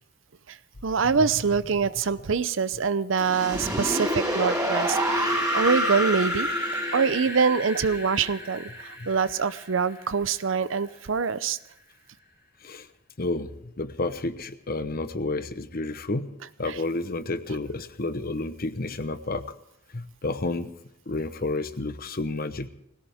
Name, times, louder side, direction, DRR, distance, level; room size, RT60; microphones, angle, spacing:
voice 1, 0.8-6.5 6.9-11.6 16.7-16.8, right 5 dB, 65° right, 15 dB, 0.6 m, -25 dB
sound 1, 3.2-10.1, equal, 15° right, 4.7 m, -28 dB
voice 2, 13.2-13.5 13.8-16.3 16.6-19.4 19.9-20.7 21.1-22.7, left 2 dB, 45° left, 11 dB, 0.9 m, -30 dB
20.5 x 17.5 x 3.5 m, 0.79 s
head